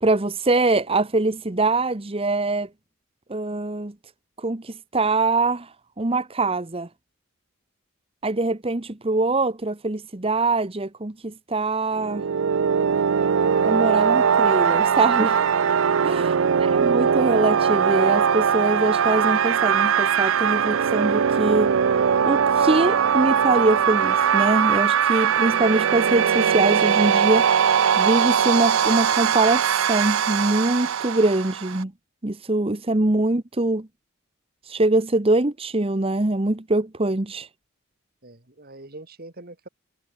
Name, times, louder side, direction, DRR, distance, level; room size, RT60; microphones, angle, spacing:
voice 1, 0.0-2.7 3.3-3.9 4.4-6.9 8.2-12.2 13.6-15.4 16.0-16.3 16.7-21.7 22.3-27.5 28.0-31.9 32.2-33.9 34.6-37.5, right 2 dB, 25° right, 1.0 m, -23 dB
sound 1, 12.0-31.8, right 7 dB, 70° right, 0.5 m, -20 dB
voice 2, 16.2-16.7 38.2-39.7, right 2 dB, 45° right, 2.7 m, -41 dB
head